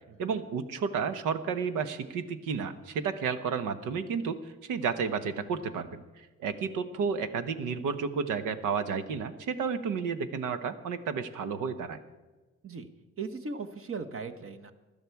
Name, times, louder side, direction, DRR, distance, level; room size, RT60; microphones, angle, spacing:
voice 1, 0.2-4.4 4.7-12.0, right 6 dB, 90° right, 11 dB, 1.0 m, -32 dB
voice 2, 13.2-14.7, right 4 dB, 45° right, 7 dB, 1.2 m, -38 dB
16.5 x 11.5 x 4.7 m, 1.2 s
cardioid pair, 90°, 30 cm